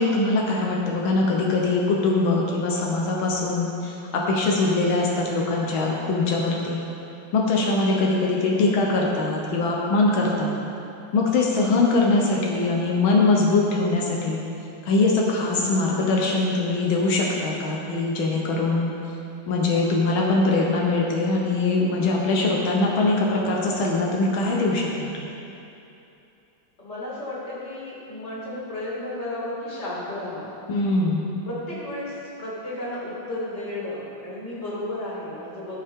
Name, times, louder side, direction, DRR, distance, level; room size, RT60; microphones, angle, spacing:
voice 1, 0.0-6.8 7.3-10.6 11.1-14.4 14.8-18.9 19.5-25.1 30.7-31.2, left 3 dB, 85° left, -2 dB, 1.8 m, -22 dB
voice 2, 5.1-5.5 8.5-8.7 26.8-30.5 31.4-35.8, left 1 dB, 35° left, -7 dB, 2.6 m, -33 dB
16.0 x 5.6 x 3.6 m, 2.8 s
omnidirectional pair, 2.1 m